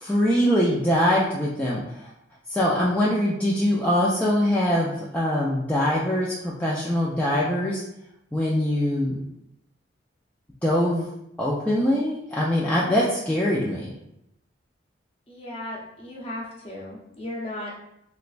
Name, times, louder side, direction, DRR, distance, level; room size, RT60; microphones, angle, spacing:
voice 1, 0.0-2.1 2.5-7.8 8.3-9.2 10.6-11.1 11.4-13.9, equal, 5° left, -6 dB, 0.4 m, -23 dB
voice 2, 15.3-17.7, left 1 dB, 30° left, -4 dB, 0.9 m, -36 dB
3.2 x 3.1 x 2.5 m, 0.80 s
head